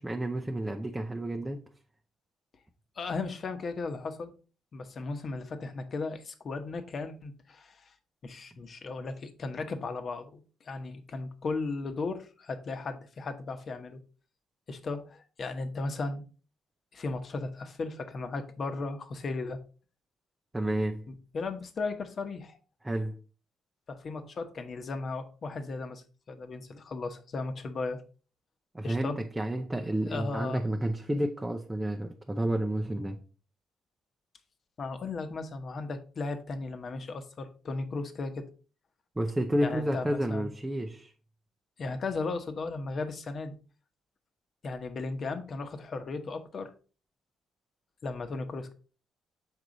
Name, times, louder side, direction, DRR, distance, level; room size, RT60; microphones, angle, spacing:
voice 1, 0.0-1.6 20.5-21.0 22.8-23.2 28.7-33.2 39.2-41.1, right 1 dB, 15° right, 0.7 m, -30 dB
voice 2, 3.0-4.3 4.7-7.9 8.2-14.0 14.7-16.2 16.9-19.6 21.1-22.6 23.9-28.0 28.8-29.2 30.0-30.7 34.8-38.5 39.6-40.5 41.8-43.6 44.6-46.7 48.0-48.7, left 3 dB, 50° left, 1.1 m, -36 dB
6.4 x 4.7 x 3.9 m
cardioid pair, 90°, 0 cm